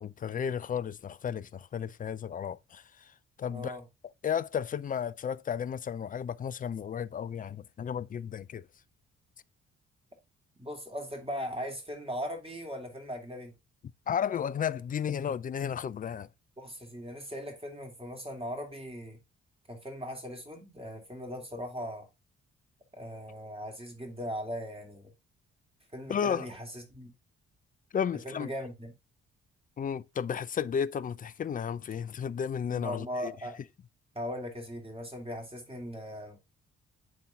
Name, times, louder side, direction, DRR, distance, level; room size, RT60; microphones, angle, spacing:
voice 1, 0.0-3.1 3.4-3.8 4.2-8.7 14.1-16.3 26.1-26.5 27.9-28.5 29.8-33.3, left 8 dB, 25° left, 0.4 m, -33 dB
voice 2, 3.5-3.8 10.6-13.5 16.6-19.2 19.7-22.1 22.9-25.1 25.9-27.1 28.2-28.9 32.7-33.6 34.1-36.4, equal, 15° right, 3.0 m, -39 dB
9.4 x 3.8 x 3.9 m
figure-of-eight pair, 40°, 34 cm